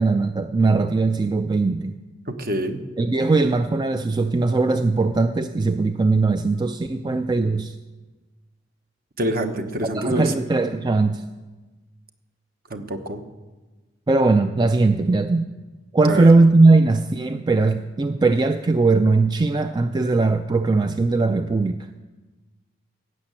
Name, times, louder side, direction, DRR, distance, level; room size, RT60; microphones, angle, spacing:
voice 1, 0.0-2.0 3.0-7.7 9.9-11.2 14.1-15.5 15.9-21.9, right 3 dB, 20° right, 8 dB, 0.4 m, -19 dB
voice 2, 2.3-2.8 9.2-10.3 12.7-13.2 16.0-16.3, right 1 dB, 50° right, 6 dB, 1.1 m, -26 dB
15.5 x 6.6 x 8.7 m, 1.2 s
head